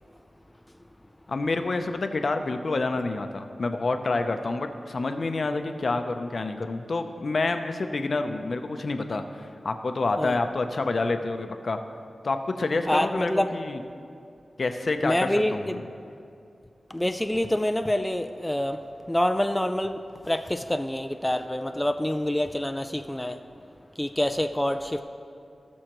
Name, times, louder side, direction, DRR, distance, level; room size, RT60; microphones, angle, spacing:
voice 1, 1.3-11.8 12.2-13.8 14.6-15.8, left 3 dB, 60° left, 7 dB, 0.6 m, -28 dB
voice 2, 12.9-13.5 15.0-15.5 16.9-18.8 19.1-23.4 24.0-25.0, left 1 dB, 10° left, 7 dB, 0.3 m, -26 dB
18.0 x 6.3 x 3.0 m, 2.5 s
wide cardioid pair, 90°, 0 cm